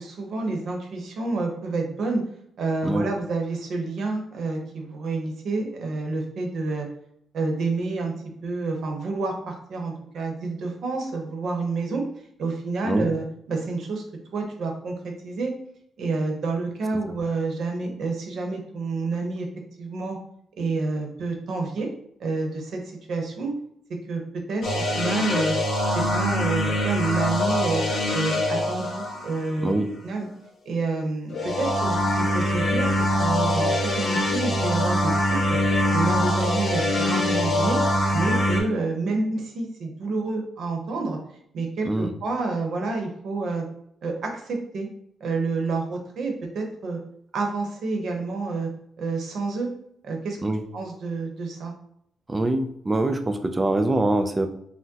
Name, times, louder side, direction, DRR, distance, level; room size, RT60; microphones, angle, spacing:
voice 1, 0.0-2.2 2.6-6.9 7.3-8.1 8.4-12.0 12.4-14.0 14.3-15.5 16.0-19.5 19.8-20.2 20.6-21.9 22.2-22.8 23.1-23.5 24.1-24.2 24.5-25.6 25.9-27.8 28.1-29.7 30.0-30.3 30.6-32.9 33.2-35.6 35.9-37.8 38.1-41.2 41.5-43.6 44.0-44.9 45.2-47.0 47.3-48.7 49.0-49.7 50.0-50.4 50.7-51.7, right 3 dB, 60° right, 2 dB, 0.8 m, -28 dB
sound 1, 24.6-29.8 31.3-38.6, left 1 dB, 55° left, 1.3 m, -23 dB
voice 2, 52.3-54.5, right 2 dB, 15° right, 7 dB, 0.3 m, -24 dB
5.8 x 2.1 x 2.8 m, 0.72 s
cardioid pair, 160°, 0 cm